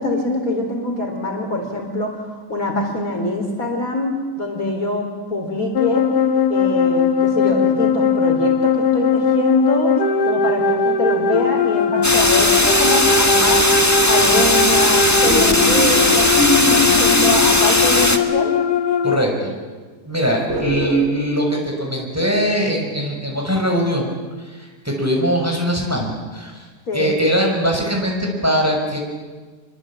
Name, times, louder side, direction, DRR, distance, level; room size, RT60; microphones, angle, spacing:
voice 1, 0.0-2.2 2.5-6.1 6.5-9.9 10.2-13.7 14.0-16.3 16.7-18.5 26.9-27.2, left 1 dB, 55° left, 2 dB, 4.4 m, -24 dB
sound 1, 5.7-19.2, left 5 dB, 70° left, 1.8 m, -19 dB
sound 2, 12.0-18.2, left 1 dB, 10° left, 1.6 m, -17 dB
sound 3, 15.2-18.4 20.5-21.0, left 1 dB, 40° right, 4.9 m, -23 dB
voice 2, 19.0-19.5 20.1-24.2 24.4-26.6 26.9-29.0, equal, 10° right, 0 dB, 5.9 m, -21 dB
27.0 x 24.0 x 8.8 m, 1.4 s
omnidirectional pair, 1.8 m